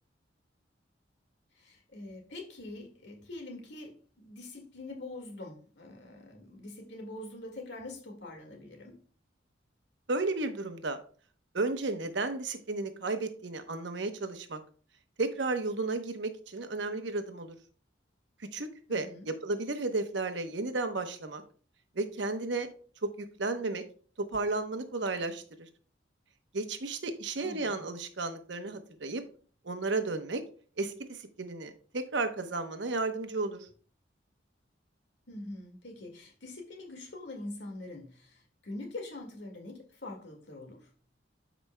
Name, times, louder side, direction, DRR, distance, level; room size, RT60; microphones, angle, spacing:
voice 1, 1.6-9.0 18.9-19.3 27.4-27.8 35.3-40.9, left 2 dB, 65° left, 1.9 m, -44 dB
voice 2, 10.1-11.0 11.5-14.6 15.2-17.5 18.5-21.4 22.0-22.7 23.0-23.1 23.4-23.8 24.2-25.7 26.5-29.2 29.6-30.4 30.8-33.7, right 3 dB, 70° right, 0.9 m, -33 dB
13.0 x 5.0 x 2.2 m
head